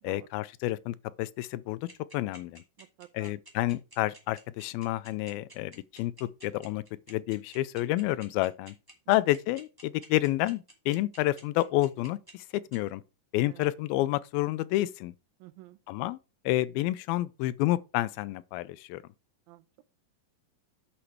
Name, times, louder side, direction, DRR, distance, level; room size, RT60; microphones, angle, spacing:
voice 1, 0.0-1.9 2.1-2.6 3.1-8.8 9.1-12.5 12.7-13.0 13.3-15.1 15.9-16.2 16.5-19.0, left 17 dB, 90° left, 2.4 m, -29 dB
sound 1, 1.9-12.8, right 1 dB, 5° right, 2.3 m, -50 dB
voice 2, 2.8-3.4 9.1-9.2 13.4-13.7 15.4-15.8 19.5-19.7, right 17 dB, 85° right, 2.5 m, -51 dB
8.7 x 6.2 x 4.8 m
omnidirectional pair, 4.2 m